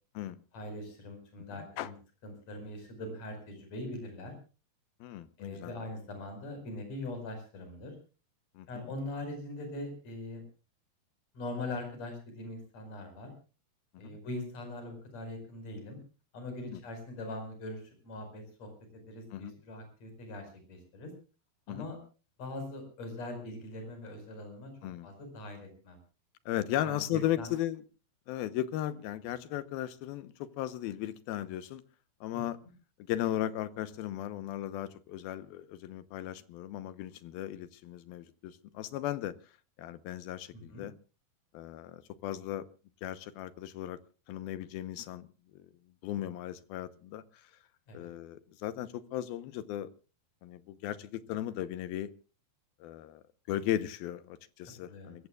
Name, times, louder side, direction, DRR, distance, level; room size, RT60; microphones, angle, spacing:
voice 1, 0.5-1.9 2.2-4.3 5.4-7.9 8.7-10.4 11.3-13.3 14.0-16.0 16.3-21.1 21.7-22.0 22.4-24.7 25.0-26.0 26.8-27.5 32.3-32.4 40.5-40.9 47.9-48.1 54.8-55.2, left 2 dB, 45° left, 6.0 m, -42 dB
voice 2, 5.0-5.7 8.6-8.8 13.9-14.2 16.7-16.8 19.3-19.5 21.7-21.9 24.8-25.1 26.5-27.8 28.3-31.8 32.2-32.6 33.1-39.3 39.8-40.9 41.5-42.7 43.0-44.0 44.3-45.3 45.5-45.7 46.0-47.2 47.9-49.9 50.4-52.1 52.8-53.2 53.5-55.3, left 12 dB, 75° left, 2.7 m, -36 dB
29.0 x 15.0 x 2.4 m
omnidirectional pair, 4.4 m